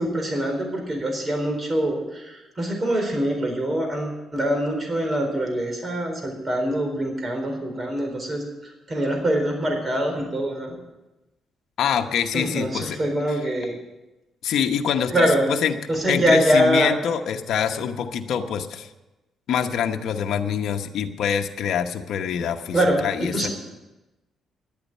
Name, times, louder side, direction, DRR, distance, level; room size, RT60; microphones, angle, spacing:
voice 1, 0.0-8.4 8.9-10.7 12.3-13.8 15.1-15.5 15.9-16.9 22.7-23.5, right 1 dB, 30° right, 3 dB, 4.1 m, -24 dB
voice 2, 11.8-13.0 13.3-13.4 14.4-15.8 16.1-18.9 19.5-23.5, left 8 dB, 70° left, 4 dB, 1.0 m, -25 dB
11.0 x 8.7 x 9.5 m, 1.0 s
cardioid pair, 90°, 0 cm